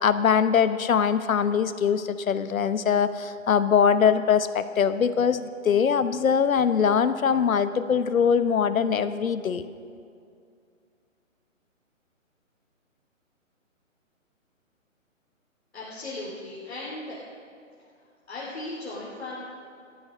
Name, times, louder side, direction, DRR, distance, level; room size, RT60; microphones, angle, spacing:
voice 1, 0.0-9.6, left 7 dB, 90° left, 12 dB, 0.9 m, -22 dB
voice 2, 15.7-17.2 17.8-17.9 18.3-19.4, left 2 dB, 50° left, -7 dB, 2.8 m, -37 dB
14.0 x 9.5 x 6.3 m, 2.3 s
hypercardioid pair, 180°, 40 cm